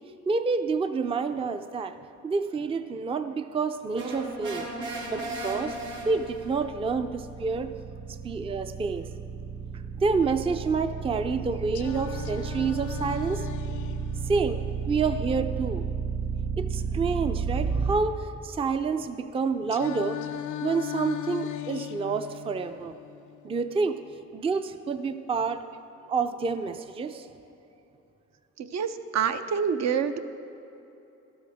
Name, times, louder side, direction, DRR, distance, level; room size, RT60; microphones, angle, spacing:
voice 1, 0.3-2.0 2.2-4.7 5.1-5.8 6.1-7.8 8.2-9.1 10.0-13.5 14.3-14.6 14.9-15.8 16.6-20.2 20.6-23.0 23.4-24.0 24.3-25.6 26.1-27.3, right 4 dB, 20° right, 9 dB, 0.4 m, -28 dB
sound 1, 3.9-6.6, right 1 dB, 80° right, 2.5 m, -35 dB
sound 2, 4.6-17.9, right 6 dB, 45° right, 2.0 m, -32 dB
Singing, 11.7-15.7 19.7-23.7, left 11 dB, 75° left, 0.6 m, -38 dB
voice 2, 28.6-30.2, right 7 dB, 60° right, 9 dB, 0.6 m, -27 dB
12.5 x 12.5 x 3.5 m, 2.9 s
cardioid pair, 90°, 30 cm